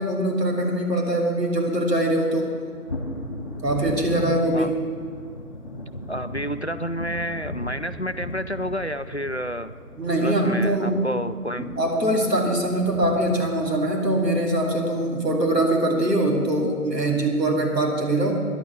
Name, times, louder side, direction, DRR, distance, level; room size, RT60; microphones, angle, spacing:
voice 1, 0.0-2.5 3.6-4.7 10.0-11.0 11.6-18.3, right 1 dB, 85° right, 0 dB, 3.1 m, -22 dB
sound 1, 1.6-15.3 16.4-16.5 17.1-17.2, left 1 dB, 30° left, 2.0 m, -37 dB
voice 2, 6.1-9.7 10.2-11.7, equal, 45° left, 12 dB, 0.4 m, -29 dB
12.0 x 10.5 x 7.3 m, 2.2 s
figure-of-eight pair, 175°, 47 cm